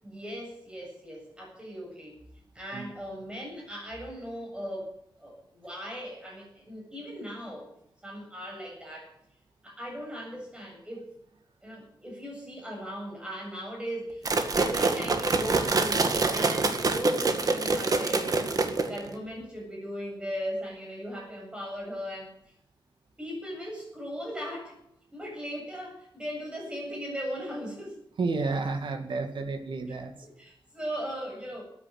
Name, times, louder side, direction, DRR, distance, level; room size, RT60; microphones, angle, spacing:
voice 1, 0.0-2.2 2.5-7.7 8.0-9.2 9.6-11.1 11.6-18.5 18.8-22.3 23.2-24.8 25.1-28.0 30.2-31.6, equal, 10° right, -1 dB, 7.6 m, -38 dB
sound 1, 14.2-19.1, right 3 dB, 50° right, 1.8 m, -26 dB
voice 2, 28.2-30.1, right 3 dB, 85° right, 4 dB, 2.4 m, -30 dB
14.0 x 9.7 x 9.1 m, 0.78 s
wide cardioid pair, 175°, 8 cm